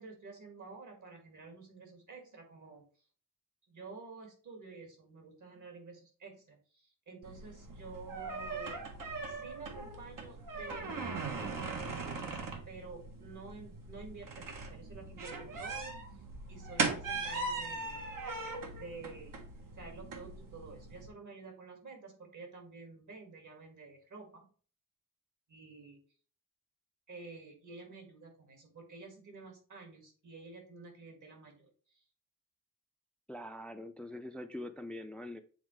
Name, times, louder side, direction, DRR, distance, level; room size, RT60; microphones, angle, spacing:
voice 1, 0.0-2.8 3.7-8.8 9.3-12.4 12.7-16.0 16.5-18.1 18.8-19.4 19.8-24.5 25.5-26.0 27.1-32.0, right 4 dB, 65° right, 2 dB, 2.4 m, -50 dB
sound 1, 7.2-21.1, right 3 dB, 85° right, 1.4 m, -40 dB
voice 2, 33.3-35.4, left 1 dB, 5° left, 9 dB, 0.3 m, -43 dB
7.9 x 3.9 x 3.3 m, 0.41 s
wide cardioid pair, 140°, 32 cm